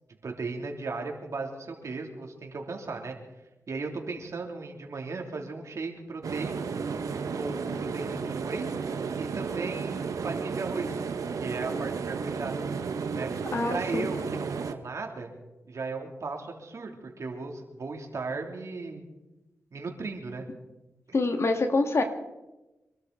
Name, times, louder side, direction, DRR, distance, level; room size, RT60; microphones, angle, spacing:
voice 1, 0.2-3.1 3.7-6.6 7.3-8.7 9.2-11.0 11.4-12.5 13.1-13.3 13.7-15.3 15.6-19.1 19.7-20.5, right 3 dB, 65° right, 2 dB, 3.1 m, -36 dB
sound 1, 6.2-14.7, right 5 dB, 80° right, 1.1 m, -33 dB
voice 2, 13.5-14.1 21.1-22.0, left 3 dB, 55° left, 5 dB, 2.3 m, -25 dB
26.0 x 12.5 x 4.1 m, 1.0 s
cardioid pair, 65°, 6 cm